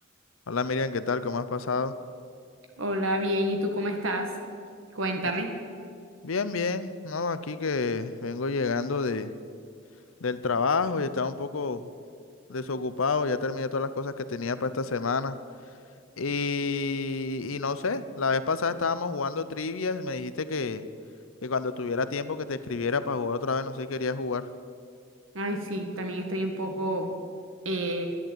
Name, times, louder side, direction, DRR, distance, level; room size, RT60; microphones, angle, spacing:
voice 1, 0.5-1.9 6.2-9.3 10.2-11.9 12.5-15.4 16.2-20.8 21.4-24.5, left 4 dB, 80° left, 13 dB, 0.7 m, -29 dB
voice 2, 2.8-4.3 5.0-5.5 25.3-27.1 27.7-28.1, equal, 80° right, 4 dB, 1.9 m, -29 dB
11.5 x 10.5 x 9.0 m, 2.3 s
head